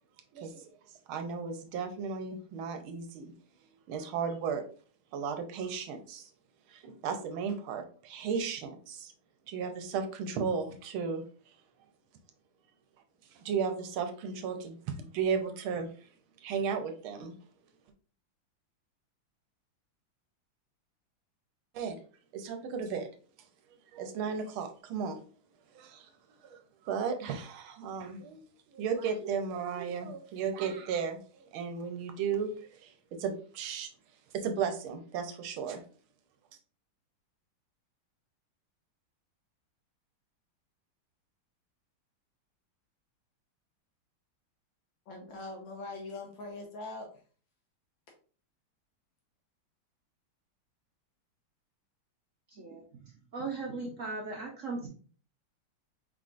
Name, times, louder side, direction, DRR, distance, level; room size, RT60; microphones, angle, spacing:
voice 1, 0.3-0.7 1.1-3.3 3.9-4.6 5.1-6.3 6.7-9.1 9.5-11.2 13.3-15.9 16.4-17.3 21.7-22.0 22.3-23.1 23.9-25.2 25.7-26.1 26.4-26.6 26.8-28.4 28.7-33.9 34.3-35.8, right 6 dB, 85° right, 6 dB, 1.5 m, -35 dB
voice 2, 45.1-47.2, left 2 dB, 70° left, 1 dB, 1.6 m, -42 dB
voice 3, 52.5-54.9, right 3 dB, 65° right, -1 dB, 0.8 m, -38 dB
4.7 x 3.7 x 2.4 m, 0.41 s
omnidirectional pair, 2.2 m